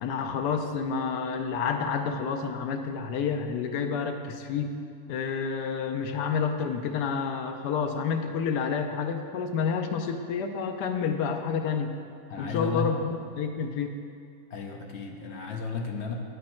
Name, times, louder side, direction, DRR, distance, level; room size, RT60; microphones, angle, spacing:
voice 1, 0.0-4.8 5.1-11.9 12.4-13.9, left 6 dB, 75° left, 6 dB, 1.2 m, -29 dB
voice 2, 12.3-12.9 14.5-16.1, left 3 dB, 60° left, 2 dB, 0.7 m, -33 dB
9.3 x 5.3 x 4.3 m, 2.3 s
omnidirectional pair, 1.8 m